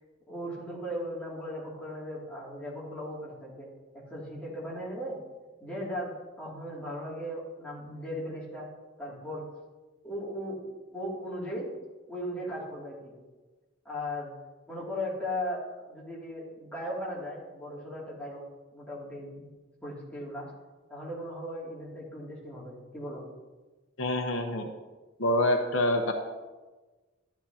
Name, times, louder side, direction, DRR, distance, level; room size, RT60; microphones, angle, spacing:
voice 1, 0.3-5.2 5.6-8.7 9.0-9.5 10.0-10.6 10.9-11.7 12.1-13.1 13.8-14.3 14.7-18.4 18.7-19.5 19.8-20.5 20.9-23.2, equal, 5° left, -7 dB, 2.6 m, -37 dB
voice 2, 24.0-24.7 25.2-26.1, left 1 dB, 75° left, 3 dB, 1.0 m, -26 dB
12.5 x 10.0 x 2.9 m, 1.2 s
head